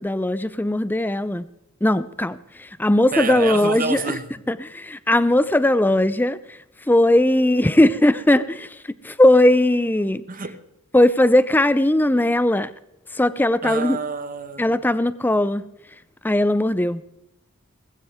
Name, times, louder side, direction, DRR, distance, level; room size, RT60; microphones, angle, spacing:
voice 1, 0.0-1.4 1.8-4.0 4.5-6.4 6.9-8.7 9.0-10.2 10.9-12.7 13.1-14.0 14.6-15.6 16.2-17.0, left 1 dB, 10° left, 0.4 m, -18 dB
voice 2, 3.1-4.4 10.3-10.6 13.6-14.8, right 4 dB, 40° right, 1.2 m, -28 dB
19.5 x 15.5 x 3.5 m
head